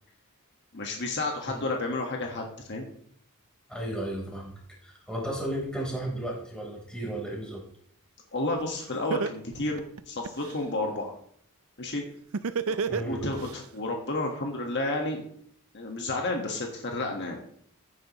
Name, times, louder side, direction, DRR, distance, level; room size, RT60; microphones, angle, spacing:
voice 1, 0.7-2.8 8.3-11.1 11.8-12.0 12.7-15.2 15.7-17.4, left 2 dB, 55° left, 1 dB, 1.6 m, -31 dB
voice 2, 3.7-4.5 4.8-7.6 12.9-13.3, right 1 dB, 5° left, -3 dB, 4.1 m, -34 dB
Laughter, 8.6-8.7 9.1-10.6 12.3-13.5, right 5 dB, 65° right, 0.5 m, -29 dB
15.5 x 9.6 x 3.1 m, 0.65 s
head